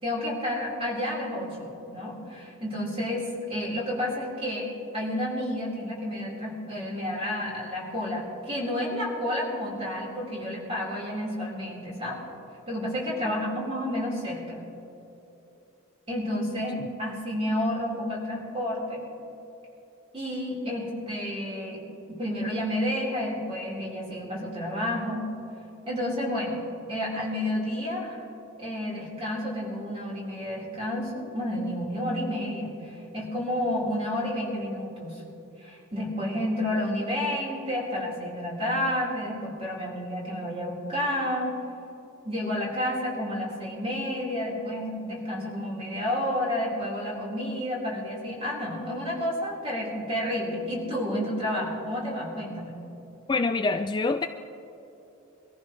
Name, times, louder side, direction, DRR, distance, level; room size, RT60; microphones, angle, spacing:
voice 1, 0.0-12.2 12.7-14.6 16.1-19.0 20.1-21.8 22.1-25.3 25.9-26.6 26.9-28.2 28.6-35.2 35.6-41.6 42.2-52.7, left 1 dB, 25° right, -5 dB, 4.4 m, -30 dB
voice 2, 53.3-54.3, left 3 dB, 20° left, 7 dB, 0.3 m, -26 dB
24.0 x 14.5 x 3.2 m, 2.9 s
head